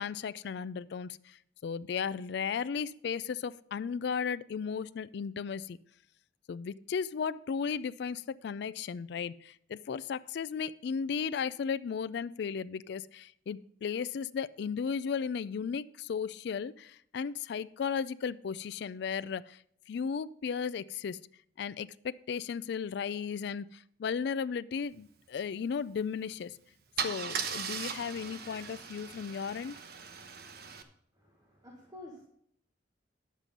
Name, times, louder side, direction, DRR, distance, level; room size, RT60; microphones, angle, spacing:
voice 1, 0.0-1.4 1.6-5.8 6.5-19.6 19.9-21.2 21.6-26.6 27.0-29.7, left 6 dB, 65° left, 16 dB, 0.3 m, -35 dB
Car / Engine starting / Idling, 26.2-26.4 27.0-30.8, right 6 dB, 60° right, 1.0 m, -38 dB
voice 2, 31.2-32.2, left 2 dB, 20° right, 0 dB, 1.5 m, -50 dB
10.0 x 7.5 x 5.2 m, 0.67 s
head